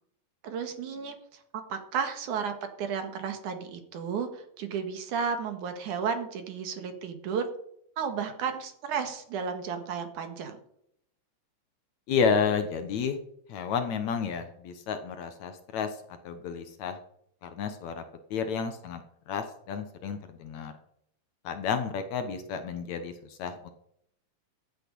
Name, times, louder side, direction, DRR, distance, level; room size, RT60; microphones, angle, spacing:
voice 1, 0.4-1.4 1.7-7.5 8.0-10.6, right 6 dB, 70° right, 7 dB, 2.9 m, -33 dB
voice 2, 12.1-13.2 13.5-17.0 17.4-18.0 18.3-20.7 21.4-23.7, left 6 dB, 65° left, 8 dB, 2.2 m, -31 dB
15.0 x 8.9 x 5.4 m, 0.72 s
omnidirectional pair, 3.9 m